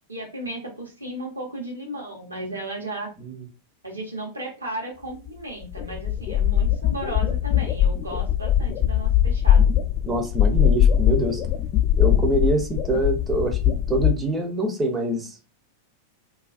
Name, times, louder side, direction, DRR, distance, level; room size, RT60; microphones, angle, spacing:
voice 1, 0.1-3.1 3.8-9.7, right 1 dB, 80° right, -1 dB, 0.9 m, -34 dB
sound 1, 5.3-5.4 5.6-14.1, left 10 dB, 35° left, 0.4 m, -21 dB
voice 2, 10.0-11.4 12.0-15.4, right 1 dB, 15° right, 4 dB, 0.6 m, -25 dB
2.3 x 2.2 x 2.4 m, 0.32 s
figure-of-eight pair, 90°, 0 cm